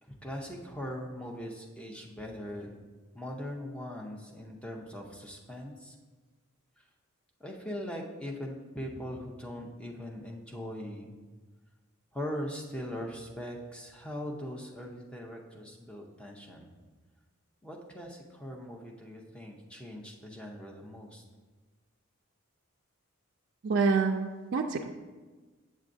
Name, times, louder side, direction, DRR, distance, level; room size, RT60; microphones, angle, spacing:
voice 1, 0.0-2.8 3.1-6.0 6.8-6.9 7.4-11.2 12.1-16.7 17.6-21.2, equal, 5° left, 0 dB, 0.6 m, -40 dB
voice 2, 23.6-24.9, right 4 dB, 55° right, 1 dB, 0.3 m, -27 dB
7.4 x 7.2 x 2.6 m, 1.3 s
head